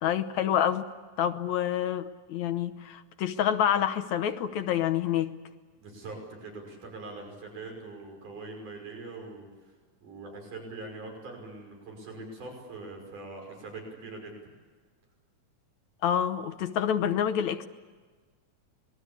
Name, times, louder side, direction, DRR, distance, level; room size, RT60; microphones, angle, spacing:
voice 1, 0.0-0.9 1.2-5.3 16.0-17.7, left 9 dB, 70° left, 10 dB, 2.0 m, -27 dB
voice 2, 5.8-9.7 10.0-14.4, right 3 dB, 70° right, 2 dB, 7.2 m, -42 dB
26.5 x 20.5 x 8.5 m, 1.4 s
omnidirectional pair, 3.8 m